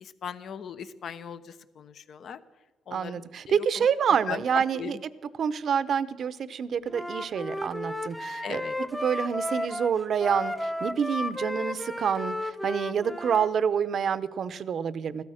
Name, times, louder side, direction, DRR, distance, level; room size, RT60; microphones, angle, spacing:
voice 1, 0.0-2.4 2.9-3.9 4.3-5.0 8.4-8.7, left 7 dB, 60° left, 13 dB, 0.9 m, -38 dB
voice 2, 2.9-5.0 5.4-8.6 9.0-15.2, right 7 dB, 60° right, 16 dB, 0.7 m, -27 dB
Wind instrument woodwind instrument, 6.9-13.5, left 1 dB, 5° left, 0.7 m, -33 dB
16.0 x 13.0 x 6.4 m, 1.2 s
cardioid pair, 90°, 0 cm